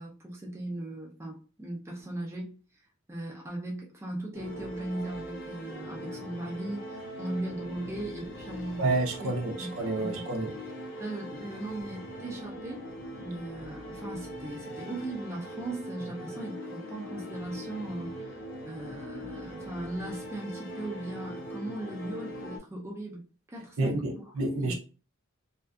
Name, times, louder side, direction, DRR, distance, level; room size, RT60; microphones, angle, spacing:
voice 1, 0.0-2.5 3.1-8.8 9.6-9.7 10.0-10.2 11.0-12.8 13.2-18.1 18.6-23.2 23.5-24.1 24.6-24.7, right 1 dB, 15° right, 0.5 m, -38 dB
sound 1, 4.3-22.6, equal, 60° left, 0.7 m, -41 dB
voice 2, 8.8-10.5 23.8-24.7, right 2 dB, 75° right, 0.6 m, -29 dB
2.5 x 2.3 x 2.3 m
head